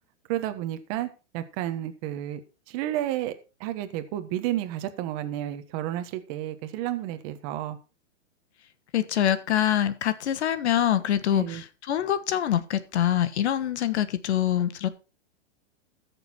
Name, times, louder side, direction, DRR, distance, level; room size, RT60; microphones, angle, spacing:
voice 1, 0.3-2.4 2.7-3.3 3.6-7.8 11.3-11.6, right 13 dB, 30° right, 1.3 m, -31 dB
voice 2, 8.9-14.9, left 11 dB, 65° left, 1.4 m, -25 dB
14.0 x 6.8 x 4.3 m
hypercardioid pair, 155°, 36 cm